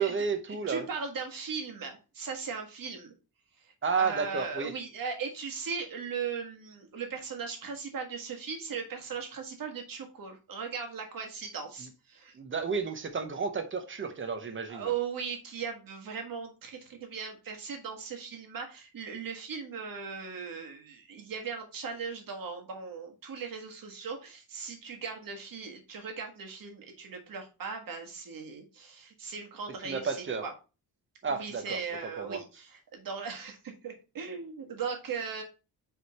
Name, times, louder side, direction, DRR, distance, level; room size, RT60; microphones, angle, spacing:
voice 1, 0.0-0.9 3.8-4.7 12.3-14.9 29.8-30.5 31.2-31.8 32.2-32.4, right 5 dB, 30° right, 0.8 m, -31 dB
voice 2, 0.7-3.1 3.6-12.4 14.7-30.5 31.3-35.4, right 6 dB, 60° right, 1.6 m, -38 dB
4.9 x 4.9 x 4.1 m
wide cardioid pair, 175°, 39 cm